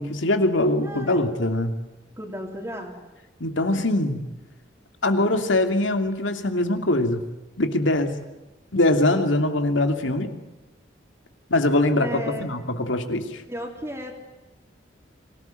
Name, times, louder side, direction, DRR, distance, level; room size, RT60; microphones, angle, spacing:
voice 1, 0.0-1.7 3.4-4.2 5.0-7.2 7.6-8.1 8.7-10.4 11.5-13.4, left 1 dB, 85° left, 7 dB, 2.7 m, -22 dB
voice 2, 0.8-1.2 2.2-3.0 12.0-12.5 13.5-14.1, equal, 15° right, 1 dB, 3.2 m, -34 dB
25.5 x 18.0 x 9.2 m, 1.1 s
head